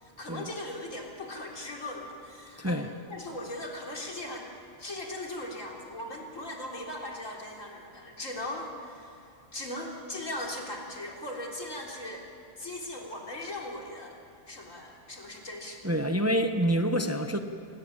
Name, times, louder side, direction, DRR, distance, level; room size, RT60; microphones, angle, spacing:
voice 1, 0.0-4.5 4.8-12.3 12.6-14.2 14.5-15.8, left 1 dB, 75° left, -1 dB, 4.2 m, -39 dB
voice 2, 2.6-2.9 15.8-17.4, equal, 10° right, 6 dB, 1.1 m, -27 dB
27.0 x 19.5 x 8.9 m, 2.6 s
omnidirectional pair, 1.3 m